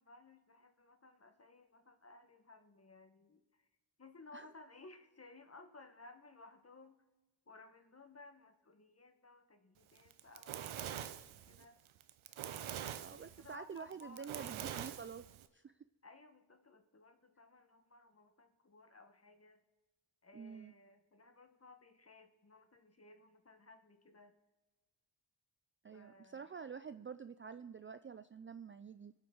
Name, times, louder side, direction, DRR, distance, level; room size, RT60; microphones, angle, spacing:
voice 1, 0.0-3.7 4.0-7.0 7.5-11.8 12.8-15.0 16.0-19.6 20.2-24.3 25.9-26.5, left 3 dB, 30° left, 7 dB, 1.4 m, -59 dB
Fire, 10.0-15.5, right 10 dB, 85° right, 0.7 m, -45 dB
voice 2, 13.0-15.3 15.5-15.7 20.3-20.7 25.8-29.1, right 6 dB, 30° right, 12 dB, 0.4 m, -48 dB
23.5 x 8.4 x 3.9 m, 1.1 s
cardioid pair, 65°, 47 cm